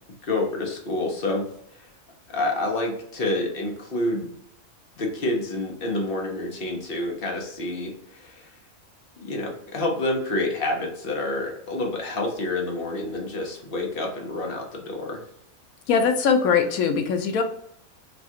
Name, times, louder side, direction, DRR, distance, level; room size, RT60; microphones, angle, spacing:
voice 1, 0.2-1.5 2.3-4.3 5.0-8.5 9.2-15.2, left 2 dB, 45° left, 2 dB, 0.9 m, -28 dB
voice 2, 15.9-17.4, left 6 dB, 80° left, 6 dB, 1.0 m, -21 dB
4.1 x 2.4 x 2.8 m, 0.73 s
omnidirectional pair, 1.5 m